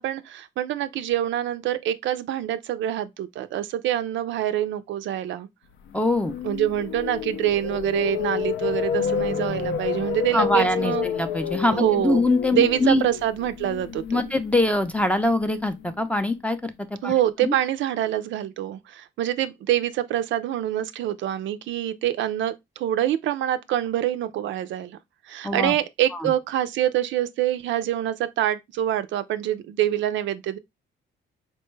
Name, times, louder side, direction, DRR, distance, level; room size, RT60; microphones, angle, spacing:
voice 1, 0.0-5.5 6.4-11.1 11.7-12.2 12.5-14.2 17.0-25.0 25.3-30.6, right 12 dB, 70° right, 0.4 m, -25 dB
sound 1, 5.9-16.0, left 7 dB, 75° left, 0.5 m, -30 dB
voice 2, 5.9-6.3 10.3-13.0 14.1-16.7 17.0-17.1 17.4-17.5 25.4-25.7 26.2-26.3, left 2 dB, 5° left, 0.4 m, -23 dB
4.3 x 2.2 x 3.0 m
cardioid pair, 90°, 20 cm